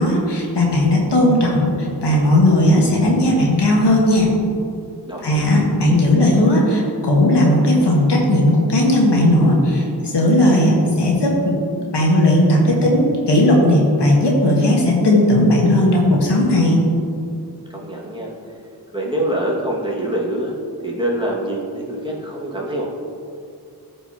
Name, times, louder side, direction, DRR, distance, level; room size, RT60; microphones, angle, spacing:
voice 1, 0.0-1.7 2.0-4.3 5.2-9.8 10.1-11.5 11.9-16.8, left 1 dB, 85° left, -2 dB, 1.5 m, -16 dB
voice 2, 5.1-5.5 17.7-18.3 18.9-20.6 20.8-22.9, right 1 dB, 10° right, -4 dB, 1.9 m, -25 dB
13.5 x 5.3 x 2.9 m, 2.5 s
cardioid pair, 60°, 40 cm